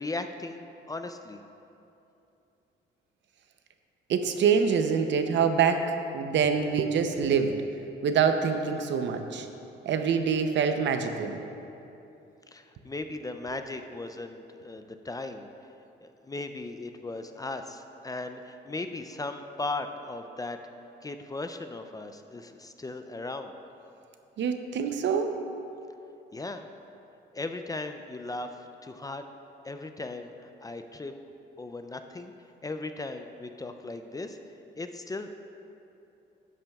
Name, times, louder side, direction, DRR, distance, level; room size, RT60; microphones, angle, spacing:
voice 1, 0.0-1.4 12.5-15.5 16.0-20.6 21.0-23.5 26.3-26.7 27.3-28.5 28.8-29.3 29.6-31.1 31.6-32.3 32.6-34.4 34.8-35.3, left 2 dB, 20° left, 7 dB, 0.4 m, -37 dB
voice 2, 4.1-5.8 6.1-7.5 8.0-9.5 9.8-11.4 24.4-25.3, right 6 dB, 65° right, 7 dB, 0.7 m, -25 dB
12.0 x 8.7 x 2.3 m, 2.8 s
cardioid pair, 90°, 20 cm